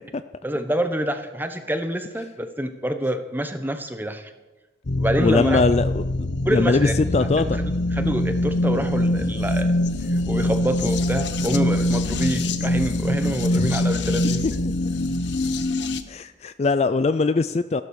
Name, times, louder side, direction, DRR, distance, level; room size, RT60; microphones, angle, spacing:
voice 1, 0.4-4.3 5.0-5.6 6.4-6.9 7.2-9.7 10.1-14.5, equal, 10° right, 8 dB, 1.1 m, -27 dB
sound 1, 4.9-16.0, left 1 dB, 65° left, 0.9 m, -24 dB
voice 2, 5.2-6.0 6.5-7.6 13.5-13.7 14.6-14.7 16.1-17.8, left 3 dB, 35° left, 12 dB, 0.4 m, -21 dB
15.0 x 12.0 x 6.4 m, 1.1 s
head